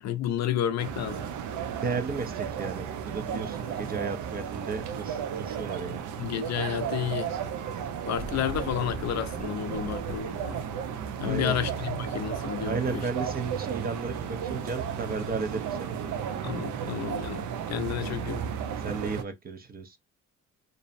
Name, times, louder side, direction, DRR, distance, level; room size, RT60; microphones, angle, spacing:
voice 1, 0.0-1.3 6.2-7.3 8.1-10.6 11.2-13.0 16.4-18.4, left 10 dB, 60° left, 0.5 m, -31 dB
sound 1, 0.8-19.2, right 7 dB, 75° right, 0.5 m, -34 dB
voice 2, 1.8-6.1 11.2-11.6 12.6-15.9 17.9-18.1 18.8-20.0, right 4 dB, 30° right, 0.5 m, -34 dB
2.6 x 2.1 x 2.5 m
cardioid pair, 90°, 30 cm